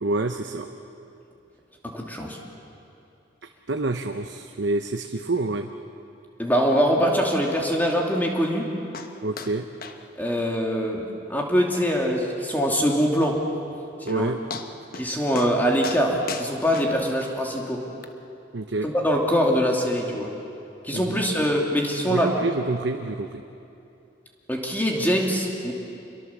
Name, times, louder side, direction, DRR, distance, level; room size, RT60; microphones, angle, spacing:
voice 1, 0.0-0.7 3.7-5.7 9.2-9.7 14.0-14.4 18.5-18.9 20.9-21.2 22.1-23.4, right 2 dB, 70° right, 5 dB, 0.9 m, -27 dB
voice 2, 1.9-2.4 6.4-8.7 10.2-13.4 14.1-14.3 14.9-17.8 18.8-20.3 20.8-22.3 24.5-25.7, equal, 10° left, -1 dB, 2.7 m, -23 dB
sound 1, 8.9-9.1 9.4-9.5 9.8-10.0 10.2-10.4 10.8-10.9 11.3-11.4 11.8-11.9 13.6-13.7 14.1-14.2 14.5-15.1 15.3-15.5 15.8-17.3 18.0-18.1, left 5 dB, 50° left, 1.2 m, -36 dB
27.0 x 22.5 x 7.3 m, 2.7 s
head